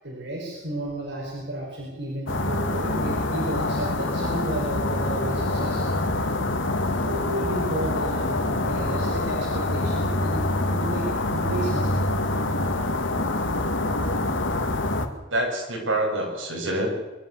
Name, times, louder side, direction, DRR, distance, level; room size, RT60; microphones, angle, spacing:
voice 1, 0.0-5.8 7.0-12.0, right 1 dB, 65° right, -2 dB, 5.2 m, -32 dB
sound 1, 2.3-15.1, left 2 dB, 75° left, 2.1 m, -25 dB
voice 2, 15.3-16.9, right 1 dB, 85° right, 0 dB, 7.2 m, -26 dB
24.0 x 13.5 x 8.2 m, 1.1 s
head